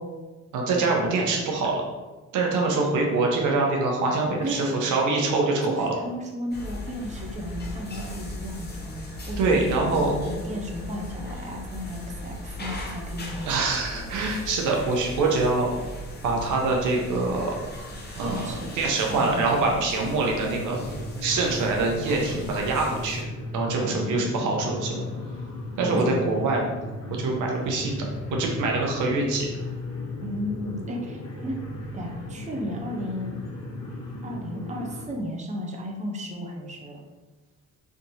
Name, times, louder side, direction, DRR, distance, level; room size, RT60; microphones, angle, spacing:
voice 1, 0.5-1.8 2.3-5.9 9.4-10.2 13.5-15.7 16.2-17.5 18.2-20.8 21.2-23.2 23.5-25.0 25.8-26.7 27.1-29.5, right 3 dB, 80° right, 0 dB, 0.9 m, -24 dB
voice 2, 4.4-4.8 5.6-13.6 18.2-19.8 23.8-24.5 25.8-26.2 30.2-31.6 31.9-33.4 34.2-37.0, equal, 25° right, 1 dB, 0.8 m, -34 dB
sound 1, 6.5-23.2, left 1 dB, 35° left, 0.9 m, -38 dB
sound 2, 20.3-35.1, left 2 dB, 65° left, 1.3 m, -36 dB
3.5 x 2.8 x 4.1 m, 1.2 s
cardioid pair, 90°, 30 cm